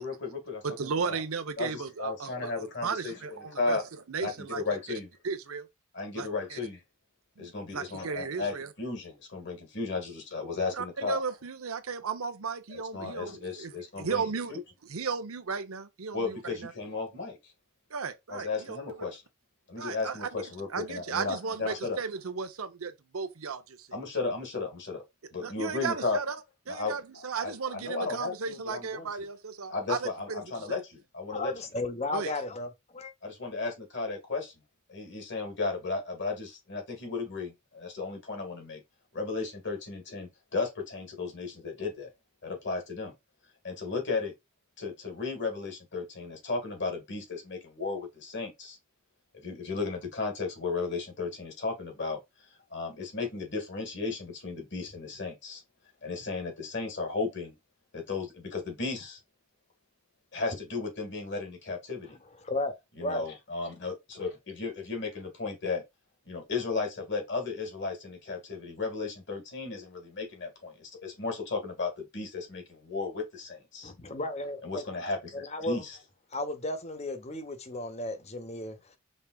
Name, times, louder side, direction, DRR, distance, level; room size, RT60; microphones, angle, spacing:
voice 1, 0.0-1.2 1.6-3.2 3.5-3.8 4.2-5.1 5.9-6.8 7.4-11.2 12.7-14.2 14.5-14.6 16.1-17.4 18.3-19.2 19.7-22.0 23.9-25.0 25.3-26.2 26.7-26.9 27.3-29.1 29.7-31.5 33.2-34.5 34.9-38.8 39.1-42.1 42.4-43.1 43.6-44.3 44.8-48.8 49.3-52.2 52.7-55.6 56.0-57.5 57.9-59.2 60.3-62.2 63.0-65.8 66.3-73.9 74.6-76.0, left 4 dB, 55° left, 1.9 m, -35 dB
voice 2, 0.6-2.5 2.8-3.8 4.1-4.6 5.2-5.7 6.2-6.6 7.4-8.7 10.8-13.7 14.0-14.5 14.9-16.7 17.9-18.8 19.8-20.3 20.7-23.9 25.4-26.4 26.7-30.4 30.7-30.8 32.1-32.3, right 5 dB, 85° right, 0.8 m, -35 dB
voice 3, 31.3-33.1 62.4-62.7 63.0-63.3 73.8-74.8 75.3-75.8 76.3-79.0, left 2 dB, 30° left, 0.8 m, -34 dB
5.3 x 3.5 x 2.3 m
head